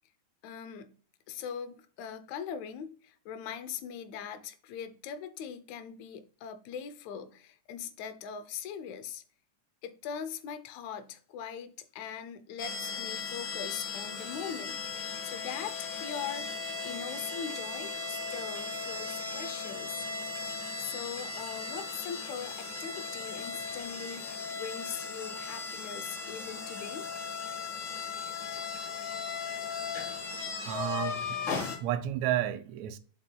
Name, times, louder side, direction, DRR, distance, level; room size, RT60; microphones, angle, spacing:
voice 1, 0.4-0.9 1.3-9.2 9.8-20.1 20.8-27.1, left 7 dB, 80° left, 2.0 m, -41 dB
sound 1, 12.6-31.8, left 4 dB, 50° left, 1.9 m, -37 dB
voice 2, 30.6-33.0, right 12 dB, 80° right, 1.8 m, -32 dB
7.5 x 5.7 x 2.2 m
omnidirectional pair, 3.3 m